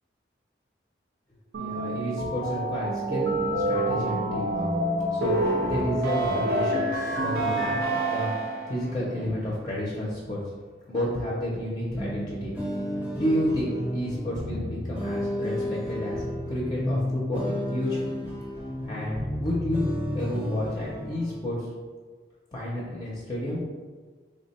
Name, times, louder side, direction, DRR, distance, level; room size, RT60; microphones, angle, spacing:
voice 1, 1.5-4.7 5.1-7.8 8.1-8.3 8.7-10.4 10.9-12.5 13.1-18.1 18.9-19.8 20.1-21.7 22.5-23.6, equal, 25° left, -5 dB, 0.5 m, -31 dB
sound 1, 1.5-8.8, right 1 dB, 60° right, 0.6 m, -27 dB
sound 2, 11.9-21.4, left 1 dB, 10° right, 0.7 m, -31 dB
3.3 x 2.1 x 4.1 m, 1.5 s
head